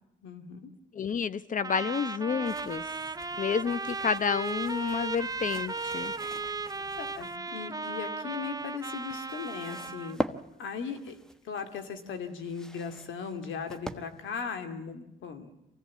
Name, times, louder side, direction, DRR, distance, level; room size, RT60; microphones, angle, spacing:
voice 1, 0.2-0.7 7.0-10.2 10.6-11.2 11.4-15.5, left 6 dB, 75° left, 7 dB, 2.6 m, -38 dB
voice 2, 0.9-2.8 3.4-6.1, left 6 dB, 40° left, 16 dB, 1.0 m, -30 dB
Trumpet, 1.6-10.2, right 3 dB, 20° right, 0.7 m, -36 dB
sound 1, 2.4-7.4 8.4-14.4, equal, 5° left, 1.2 m, -43 dB
24.5 x 16.5 x 8.5 m, 0.85 s
cardioid pair, 90°, 20 cm